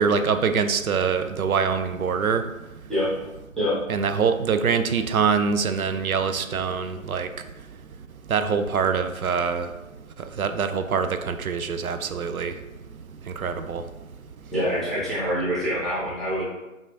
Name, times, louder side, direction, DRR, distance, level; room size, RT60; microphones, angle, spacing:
voice 1, 0.0-2.4 3.9-7.3 8.3-9.7 10.4-12.5 13.4-13.8, right 6 dB, 90° right, 9 dB, 0.5 m, -24 dB
voice 2, 14.5-16.4, equal, ahead, -11 dB, 0.7 m, -25 dB
5.4 x 2.4 x 2.6 m, 1.0 s
figure-of-eight pair, 175°, 41 cm